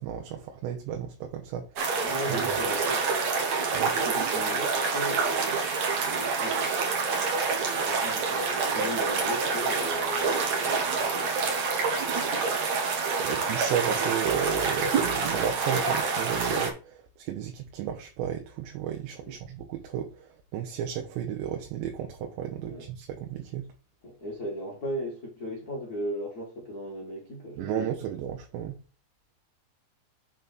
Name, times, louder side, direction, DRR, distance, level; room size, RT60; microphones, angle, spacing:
voice 1, 0.0-2.0 2.3-2.6 3.7-4.0 13.2-23.7 27.6-28.8, right 9 dB, 80° right, 3.1 m, -33 dB
sound 1, 1.8-16.7, right 5 dB, 55° right, 2.1 m, -27 dB
voice 2, 2.0-6.9 7.5-12.6 19.2-19.4 22.6-22.9 24.0-27.7, equal, 85° left, 0.8 m, -37 dB
7.1 x 3.9 x 6.0 m
omnidirectional pair, 5.0 m